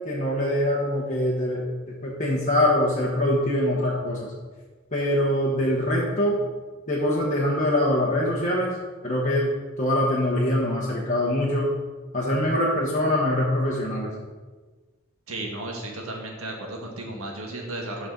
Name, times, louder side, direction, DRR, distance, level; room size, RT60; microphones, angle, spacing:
voice 1, 0.1-1.6 2.0-4.3 4.9-6.4 6.9-8.7 9.0-11.7 12.1-14.1, left 1 dB, 35° left, -5 dB, 1.1 m, -23 dB
voice 2, 15.3-18.1, right 2 dB, 90° right, 0 dB, 1.7 m, -34 dB
12.5 x 4.2 x 3.9 m, 1.3 s
head